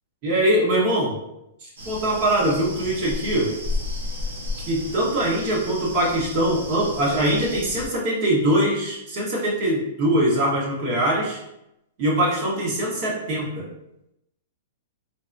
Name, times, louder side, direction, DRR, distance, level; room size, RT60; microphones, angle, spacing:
voice 1, 0.2-1.1 1.6-3.5 4.7-11.4 12.0-13.7, right 1 dB, 40° right, -4 dB, 1.1 m, -22 dB
sound 1, 1.8-7.9, left 2 dB, 85° right, 0.9 m, -33 dB
3.8 x 2.1 x 2.5 m, 0.84 s
hypercardioid pair, 150°, 0 cm